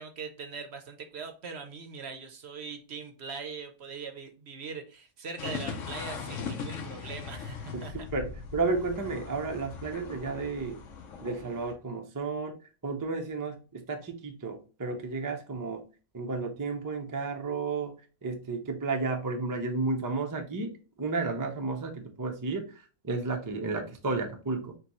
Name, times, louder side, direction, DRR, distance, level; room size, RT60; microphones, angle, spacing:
voice 1, 0.0-8.0, right 5 dB, 60° right, 5 dB, 0.8 m, -41 dB
sound 1, 5.4-11.7, left 5 dB, 65° left, 1.1 m, -39 dB
voice 2, 7.7-10.8 11.2-12.6 12.8-15.8 16.1-17.9 18.2-20.7 21.0-22.6 23.0-24.7, right 3 dB, 25° right, 3 dB, 0.4 m, -32 dB
6.6 x 2.3 x 3.0 m, 0.36 s
omnidirectional pair, 1.4 m